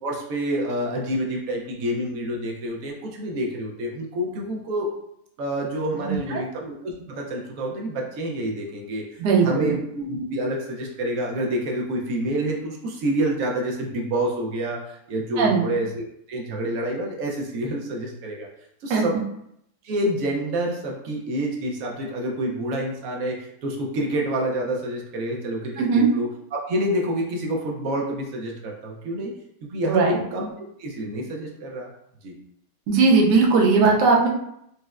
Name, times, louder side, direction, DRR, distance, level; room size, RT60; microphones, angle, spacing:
voice 1, 0.0-4.9 5.4-18.5 18.8-19.2 19.8-29.3 29.6-30.5 30.8-31.9 32.2-32.4, right 1 dB, 70° right, -1 dB, 0.8 m, -28 dB
voice 2, 6.0-6.4 9.2-9.7 15.4-15.6 18.9-19.0 25.8-26.1 29.9-30.2 32.9-34.3, right 4 dB, 90° right, -1 dB, 1.2 m, -18 dB
4.1 x 2.0 x 2.3 m, 0.76 s
omnidirectional pair, 1.8 m